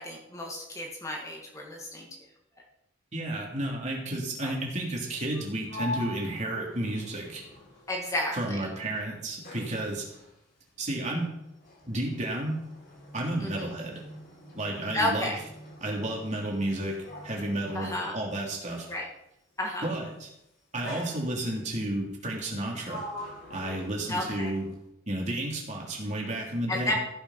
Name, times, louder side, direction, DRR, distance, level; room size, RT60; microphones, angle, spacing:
voice 1, 0.0-2.1 4.4-4.5 7.9-8.6 13.4-13.6 14.9-15.4 17.7-18.2 18.9-19.1 19.6-19.9 24.1-24.5 26.7-26.9, left 1 dB, 15° left, -1 dB, 1.7 m, -31 dB
voice 2, 3.1-7.4 8.3-10.1 10.8-11.3 11.9-12.6 13.1-14.0 14.5-15.4 15.8-17.0 17.2-18.9 19.8-20.3 20.7-23.0 23.5-24.7 25.1-26.9, right 1 dB, 35° right, -2 dB, 3.1 m, -32 dB
Sliding door, 5.3-8.5 8.8-19.0 19.9-20.2 20.8-21.7 22.3-24.9, left 1 dB, 50° left, 4.4 m, -44 dB
15.0 x 7.1 x 5.8 m, 0.84 s
head